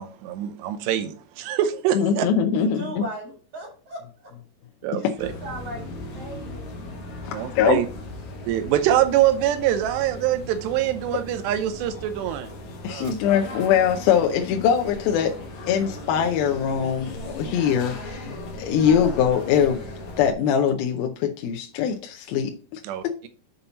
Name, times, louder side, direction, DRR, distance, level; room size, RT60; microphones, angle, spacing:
voice 1, 0.0-2.3 4.8-5.3 7.3-7.9 8.5-12.5 12.9-13.1 17.4-17.5 22.8-23.0, right 12 dB, 85° right, 10 dB, 3.0 m, -24 dB
voice 2, 1.9-3.0 7.2-7.8 12.8-15.4 15.7-19.8 20.2-22.8, left 8 dB, 80° left, 3 dB, 2.2 m, -22 dB
voice 3, 2.5-4.3 4.9-6.7, right 1 dB, 50° right, -2 dB, 3.1 m, -38 dB
sound 1, 5.2-20.3, left 1 dB, 60° left, 2.2 m, -37 dB
7.0 x 5.7 x 4.0 m, 0.40 s
omnidirectional pair, 4.8 m